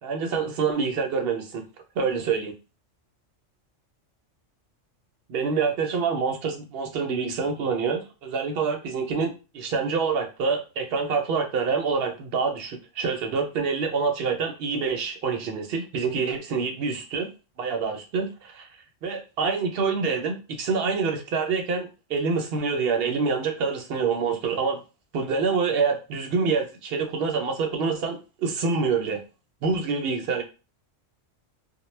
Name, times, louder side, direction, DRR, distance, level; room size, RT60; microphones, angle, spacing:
voice 1, 0.0-1.6 2.0-2.5 5.3-17.3 17.6-18.7 19.0-24.8 25.1-29.2 29.6-30.4, right 5 dB, 60° right, 4 dB, 0.7 m, -26 dB
2.2 x 2.0 x 3.1 m, 0.31 s
omnidirectional pair, 1.3 m